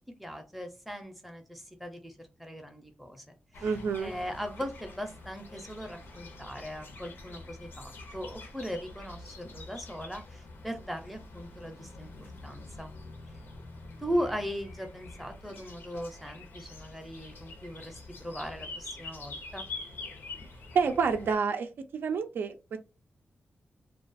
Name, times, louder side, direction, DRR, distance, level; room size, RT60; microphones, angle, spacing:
voice 1, 0.2-2.1 2.4-3.2 3.6-3.7 4.0-12.1 12.4-12.9 14.0-19.7, equal, ahead, 0.5 m, -38 dB
sound 1, 3.5-21.4, left 3 dB, 85° left, 0.7 m, -46 dB
voice 2, 3.6-4.1 20.7-22.8, right 5 dB, 75° right, 0.3 m, -29 dB
2.3 x 2.3 x 2.5 m
wide cardioid pair, 145°, 4 cm